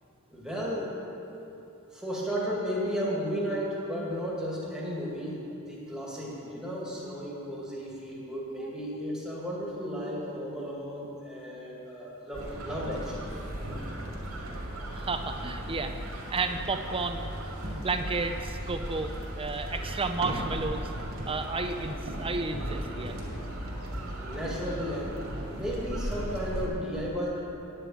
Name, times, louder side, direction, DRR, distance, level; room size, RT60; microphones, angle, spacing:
voice 1, 0.3-0.9 1.9-13.3 24.2-27.4, equal, 5° right, -5 dB, 2.2 m, -34 dB
sound 1, 12.3-26.7, equal, 85° right, 2.3 m, -36 dB
voice 2, 14.8-15.9 16.3-17.3 17.7-20.9 21.3-23.1, right 3 dB, 25° right, 6 dB, 0.6 m, -32 dB
9.2 x 6.9 x 8.7 m, 2.8 s
head